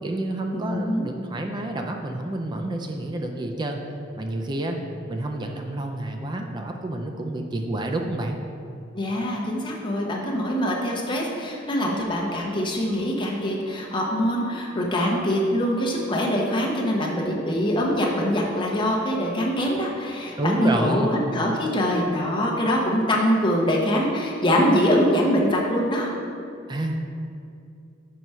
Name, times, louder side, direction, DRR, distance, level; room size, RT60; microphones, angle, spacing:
voice 1, 0.0-3.8 4.2-4.8 5.1-8.4 20.4-21.1 26.7-27.0, right 1 dB, 25° right, 3 dB, 0.4 m, -29 dB
voice 2, 0.5-1.1 8.9-26.1, equal, 25° left, -2 dB, 0.9 m, -23 dB
5.0 x 4.6 x 5.5 m, 2.5 s
head